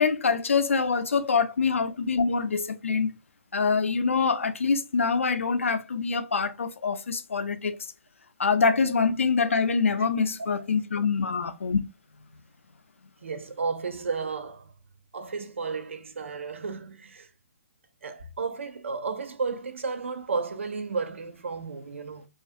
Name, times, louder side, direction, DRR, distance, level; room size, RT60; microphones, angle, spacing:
voice 1, 0.0-3.2 3.5-7.8 8.4-11.8, left 5 dB, 80° left, 0.4 m, -25 dB
voice 2, 0.5-0.9 9.7-9.8 13.2-14.7 15.1-17.3 18.0-22.3, right 4 dB, 70° right, 0.5 m, -33 dB
2.4 x 2.3 x 2.5 m
figure-of-eight pair, 135°, 7 cm